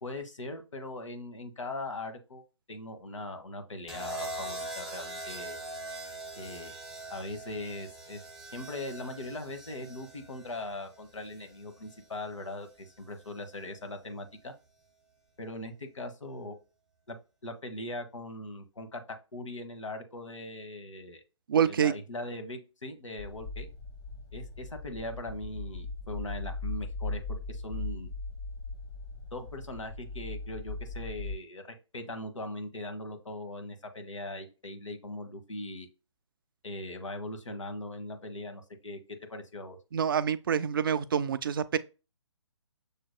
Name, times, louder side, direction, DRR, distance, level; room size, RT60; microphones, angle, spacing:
voice 1, 0.0-2.4 2.7-5.6 6.3-6.7 7.1-8.2 8.5-14.5 15.4-16.6 17.1-17.2 17.4-19.0 19.3-21.2 21.6-23.7 24.3-28.1 29.3-35.9 36.6-39.0 39.3-39.8, left 2 dB, 75° left, 1.2 m, -40 dB
sound 1, 3.9-12.0 13.2-13.6, right 1 dB, ahead, 0.8 m, -42 dB
voice 2, 21.5-21.9 39.9-41.8, right 8 dB, 45° right, 0.4 m, -26 dB
sound 2, 23.2-31.3, left 3 dB, 35° left, 1.4 m, -39 dB
6.7 x 2.9 x 2.2 m
figure-of-eight pair, 140°, 16 cm